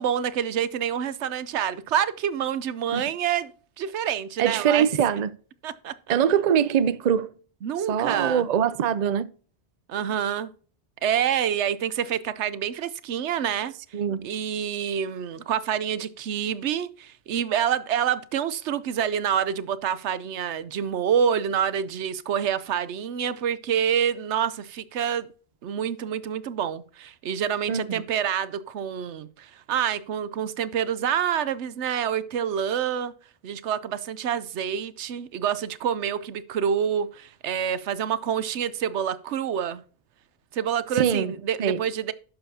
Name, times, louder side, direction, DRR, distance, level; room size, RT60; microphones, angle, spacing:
voice 1, 0.0-3.5 3.8-4.9 5.6-6.1 7.6-8.5 9.9-10.5 11.0-13.7 14.2-25.3 25.6-33.1 33.4-39.8 40.5-42.1, right 8 dB, 80° right, 1.0 m, -27 dB
voice 2, 4.4-5.3 6.1-7.3 7.9-9.3 13.9-14.3 27.7-28.0 40.9-41.3 41.6-41.8, right 8 dB, 50° right, 0.6 m, -23 dB
11.5 x 7.0 x 2.8 m
omnidirectional pair, 1.2 m